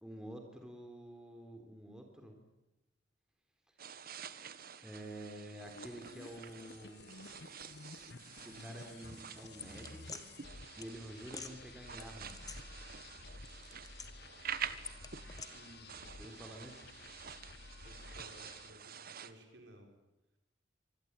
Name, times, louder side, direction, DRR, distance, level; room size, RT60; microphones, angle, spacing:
voice 1, 0.0-2.3 4.8-7.3 8.4-10.2 10.8-12.5 16.2-16.8, right 1 dB, 5° right, 3 dB, 3.8 m, -49 dB
sound 1, 3.8-19.3, right 8 dB, 55° right, 1.4 m, -48 dB
sound 2, 5.6-18.8, left 3 dB, 60° left, 1.2 m, -53 dB
sound 3, 9.6-10.2 10.8-10.9 11.3-11.5 12.0-13.1 13.4-14.4 14.8-15.5, left 4 dB, 20° left, 1.9 m, -48 dB
voice 2, 15.5-15.9 16.2-16.5 17.8-19.9, equal, 70° right, 4 dB, 5.9 m, -58 dB
25.5 x 21.5 x 9.1 m, 0.95 s
head